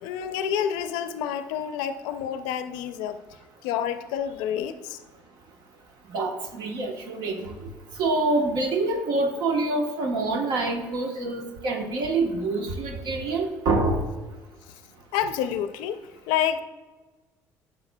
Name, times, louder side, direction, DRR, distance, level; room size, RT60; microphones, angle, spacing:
voice 1, 0.0-3.2 3.6-5.0 15.1-16.0 16.3-16.6, left 9 dB, 90° left, 11 dB, 0.4 m, -28 dB
voice 2, 6.1-7.7 8.0-14.0, right 2 dB, 70° right, 3 dB, 1.1 m, -26 dB
9.6 x 6.8 x 2.2 m, 1.2 s
supercardioid pair, 90°, 7 cm